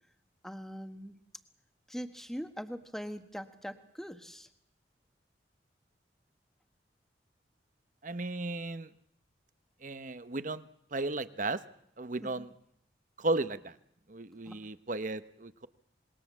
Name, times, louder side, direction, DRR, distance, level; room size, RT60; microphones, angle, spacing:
voice 1, 0.4-1.2 1.9-4.5 12.2-12.5 14.5-14.6, equal, ahead, 8 dB, 1.4 m, -42 dB
voice 2, 8.0-8.9 9.8-10.6 10.9-11.6 12.0-12.5 13.2-13.7 14.1-15.7, right 2 dB, 45° right, 13 dB, 1.0 m, -34 dB
26.5 x 21.5 x 7.4 m, 0.73 s
head